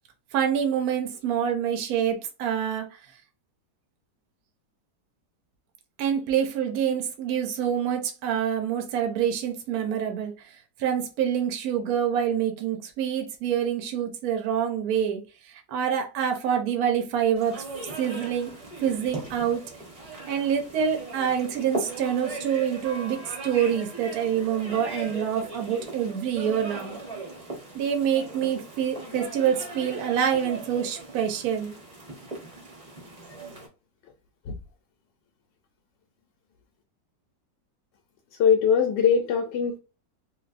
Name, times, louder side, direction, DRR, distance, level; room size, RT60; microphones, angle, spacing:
voice 1, 0.3-3.0 6.0-10.3 10.8-15.2 15.7-17.6 18.0-18.5 18.8-19.6 20.3-27.0 27.7-31.7, right 8 dB, 65° right, 1.1 m, -26 dB
sound 1, 17.4-33.7, right 2 dB, 25° right, 0.8 m, -39 dB
voice 2, 38.4-39.8, left 7 dB, 90° left, 1.2 m, -21 dB
3.3 x 2.6 x 2.4 m
omnidirectional pair, 1.9 m